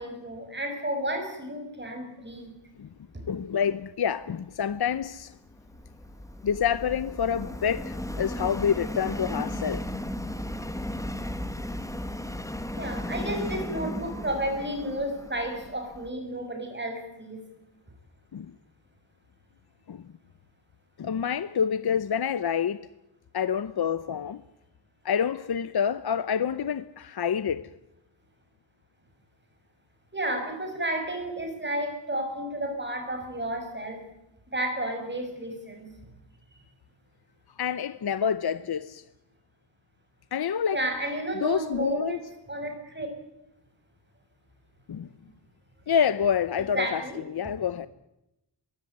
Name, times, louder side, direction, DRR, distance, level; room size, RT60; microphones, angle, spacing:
voice 1, 0.0-2.5 12.7-17.5 30.1-34.0 34.5-35.9 40.7-43.1 46.7-47.2, right 1 dB, 25° right, 6.4 m, -32 dB
voice 2, 3.3-5.3 6.4-9.9 18.3-18.5 19.9-20.0 21.0-22.9 23.3-24.4 25.0-27.7 37.6-39.0 40.3-40.8 41.4-42.2 44.9-45.1 45.9-47.9, left 7 dB, 60° left, 0.8 m, -27 dB
Subway metro underground, 4.8-16.1, left 1 dB, 5° left, 1.5 m, -35 dB
22.0 x 16.5 x 9.6 m
wide cardioid pair, 140°, 44 cm